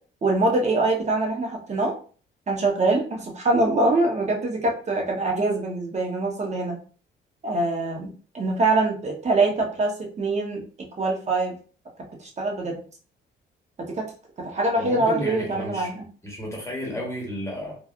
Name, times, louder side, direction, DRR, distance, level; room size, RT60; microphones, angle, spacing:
voice 1, 0.2-1.9 2.5-6.8 7.4-10.6 11.0-11.5 12.0-12.8 13.8-14.1 14.4-16.0, right 2 dB, 35° right, 1 dB, 0.9 m, -24 dB
voice 2, 14.7-15.9 16.2-17.8, equal, 15° left, -3 dB, 1.1 m, -32 dB
3.2 x 2.3 x 2.4 m, 0.40 s
cardioid pair, 90°, 20 cm